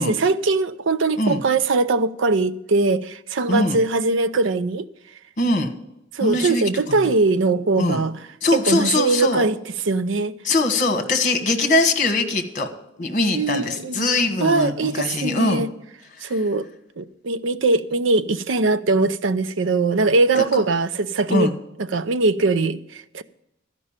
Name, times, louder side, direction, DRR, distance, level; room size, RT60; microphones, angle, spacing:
voice 1, 0.0-4.9 6.1-8.1 8.5-9.6 9.9-10.3 13.3-14.1 14.4-15.7 16.2-16.7 17.0-21.5 21.9-23.2, right 3 dB, 65° right, 0.6 m, -21 dB
voice 2, 3.5-3.8 5.4-5.7 6.2-7.1 7.8-8.0 8.4-9.4 10.4-12.7 13.0-15.6 16.2-16.3 20.4-20.6 21.3-21.5, left 2 dB, 40° left, 1.4 m, -22 dB
13.0 x 5.3 x 8.8 m
head